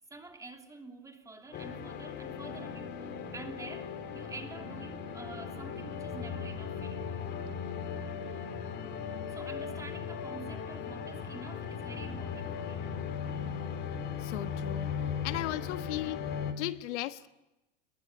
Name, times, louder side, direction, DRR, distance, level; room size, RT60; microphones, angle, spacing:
voice 1, 0.1-2.9 3.3-7.0 9.3-13.0, right 3 dB, 10° right, 3.0 m, -47 dB
sound 1, 1.5-16.5, left 7 dB, 25° left, 3.2 m, -38 dB
sound 2, 5.0-13.4, right 7 dB, 70° right, 7.4 m, -53 dB
voice 2, 14.2-14.9 15.2-16.3 16.6-17.3, left 16 dB, 60° left, 1.4 m, -36 dB
28.0 x 22.0 x 9.0 m
supercardioid pair, 145°, 38 cm